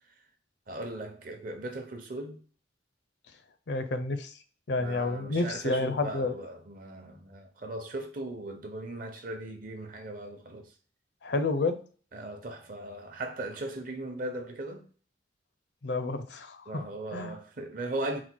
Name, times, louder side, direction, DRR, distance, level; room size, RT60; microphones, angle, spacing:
voice 1, 0.7-2.4 4.8-10.7 12.1-14.9 16.7-18.2, right 1 dB, 50° right, 0.7 m, -38 dB
voice 2, 3.7-4.3 4.7-6.3 11.2-11.8 15.8-16.8 17.1-17.3, left 3 dB, 65° left, 0.5 m, -30 dB
4.2 x 2.2 x 4.4 m
head